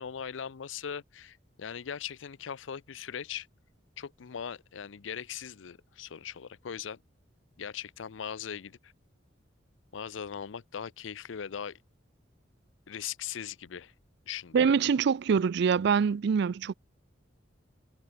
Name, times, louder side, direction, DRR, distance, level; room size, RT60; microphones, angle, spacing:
voice 1, 0.0-3.5 4.0-7.0 7.6-8.9 9.9-11.8 12.9-13.9 14.3-14.9, left 8 dB, 80° left, 0.5 m, -40 dB
voice 2, 14.5-16.7, right 6 dB, 60° right, 0.4 m, -24 dB
head